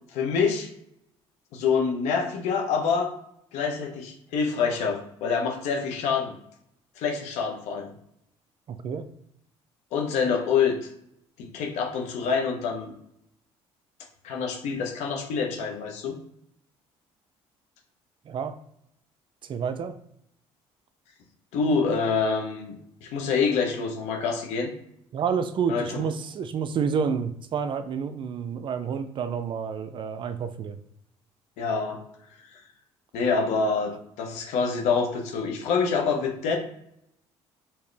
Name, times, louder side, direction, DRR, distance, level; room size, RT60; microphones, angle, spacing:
voice 1, 0.1-0.7 1.5-3.1 3.5-6.3 7.0-7.9 9.9-10.9 11.4-12.9 14.2-16.2 21.5-24.7 25.7-26.0 31.6-32.0 32.5-32.6 33.1-36.6, left 5 dB, 80° left, 3 dB, 0.9 m, -26 dB
voice 2, 8.7-9.0 18.3-18.6 19.4-19.9 25.1-30.8, right 6 dB, 45° right, 10 dB, 0.4 m, -29 dB
4.2 x 2.9 x 3.3 m, 0.74 s
cardioid pair, 100°, 11 cm